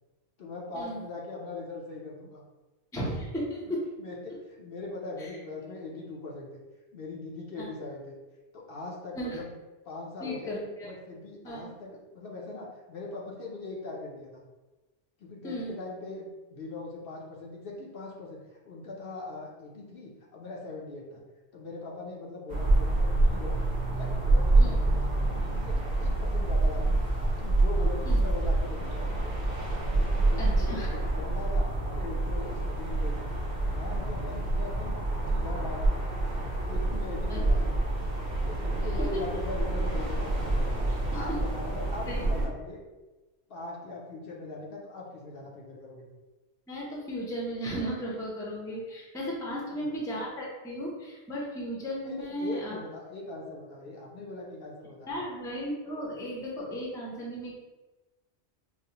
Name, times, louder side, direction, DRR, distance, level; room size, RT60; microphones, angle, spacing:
voice 1, 0.4-2.4 4.0-6.6 6.9-8.2 8.5-9.5 9.8-10.5 10.9-14.4 15.2-21.2 21.5-23.6 23.9-27.0 27.4-29.3 29.9-33.3 33.7-36.0 36.7-37.7 38.5-40.6 41.1-42.8 43.5-46.1 49.5-49.9 52.0-55.2, left 3 dB, 60° left, -2 dB, 0.8 m, -41 dB
voice 2, 2.9-3.8 5.2-5.3 7.6-7.7 9.1-9.4 10.2-10.9 11.4-11.7 15.4-15.7 24.6-24.8 28.0-28.2 30.4-30.9 37.3-37.4 39.0-39.1 41.1-41.4 42.1-42.3 46.7-52.8 55.1-57.5, equal, 5° left, -4 dB, 0.5 m, -35 dB
sound 1, 22.5-42.5, right 2 dB, 45° right, 0.7 m, -27 dB
4.7 x 2.1 x 2.8 m, 1.2 s
omnidirectional pair, 1.2 m